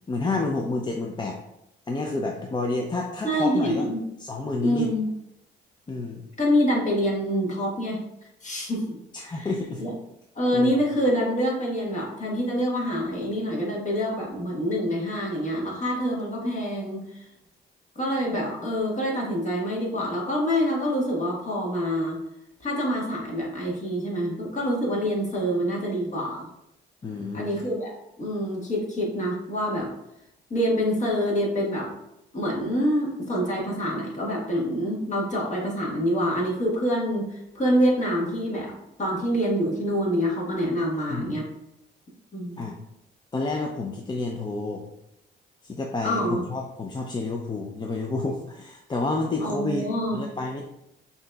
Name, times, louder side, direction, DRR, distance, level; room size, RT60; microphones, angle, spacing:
voice 1, 0.1-1.4 1.9-3.9 4.2-4.9 5.9-6.2 9.1-9.9 10.5-10.8 27.0-27.5 41.1-41.3 42.6-42.8 43.3-44.9 45.6-50.6, left 3 dB, 20° left, 1 dB, 0.4 m, -29 dB
voice 2, 3.2-4.0 4.6-5.1 6.4-8.0 8.4-9.0 9.2-9.5 9.8-9.9 10.3-17.2 17.9-22.2 22.6-26.5 27.3-27.9 28.2-29.9 30.5-31.9 32.3-38.7 39.0-41.5 42.3-42.7 46.0-46.4 49.4-50.2, equal, 40° left, -2 dB, 1.4 m, -26 dB
5.7 x 2.7 x 2.3 m, 0.83 s
cardioid pair, 90°, 20 cm